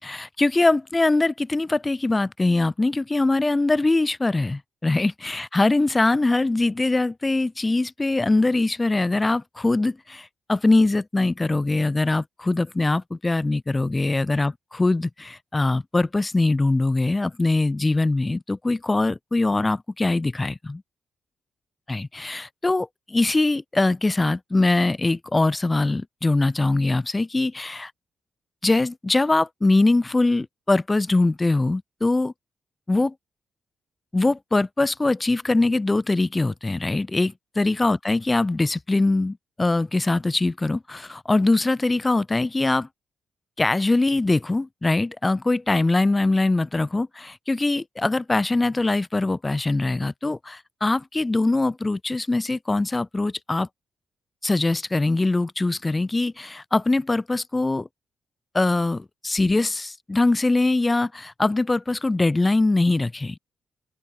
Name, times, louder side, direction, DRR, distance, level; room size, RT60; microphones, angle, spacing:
voice 1, 0.0-20.8 21.9-27.9 28.6-32.3 32.9-33.1 34.1-42.9 43.6-53.7 54.4-57.9 58.5-63.4, left 2 dB, 25° left, 2.4 m, -22 dB
open air
cardioid pair, 65°, 0 cm